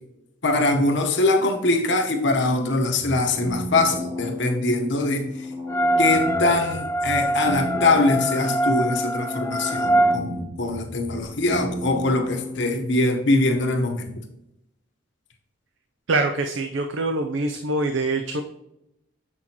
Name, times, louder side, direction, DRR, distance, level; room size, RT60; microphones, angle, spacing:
voice 1, 0.4-5.5 6.0-14.2, left 2 dB, 60° left, 4 dB, 1.0 m, -22 dB
sound 1, 2.9-12.9, left 1 dB, 20° right, 0.9 m, -34 dB
sound 2, 5.7-10.2, right 1 dB, 10° left, 0.3 m, -23 dB
voice 2, 16.1-18.4, right 2 dB, 70° right, 6 dB, 0.5 m, -24 dB
7.5 x 6.1 x 2.9 m, 0.86 s
head